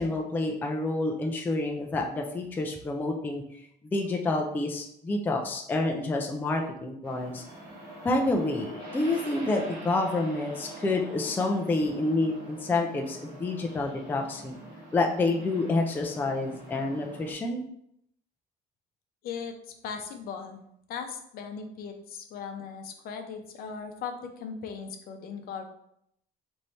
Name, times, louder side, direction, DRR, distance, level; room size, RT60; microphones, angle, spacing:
voice 1, 0.0-3.4 3.9-7.4 8.0-14.6 14.9-17.6, left 2 dB, 10° left, 2 dB, 0.3 m, -28 dB
sound 1, 7.0-17.3, right 1 dB, 60° right, 1.1 m, -44 dB
voice 2, 19.2-19.6 19.8-20.6 20.9-25.6, left 6 dB, 60° left, 5 dB, 0.6 m, -38 dB
3.2 x 2.6 x 4.2 m, 0.73 s
cardioid pair, 155°, 17 cm